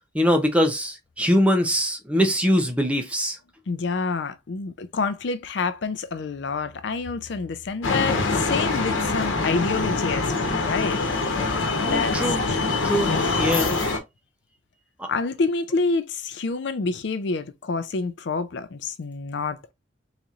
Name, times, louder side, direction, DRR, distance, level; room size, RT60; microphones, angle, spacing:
voice 1, 0.1-3.4 11.8-12.4 12.8-13.7 15.0-15.1, equal, 5° right, 0.6 m, -22 dB
voice 2, 3.7-11.0 11.9-12.2 12.5-12.7 13.0-13.3 15.1-19.7, left 4 dB, 65° left, 0.4 m, -28 dB
sound 1, 7.8-14.0, left 3 dB, 90° left, 1.0 m, -24 dB
4.0 x 3.0 x 2.3 m
head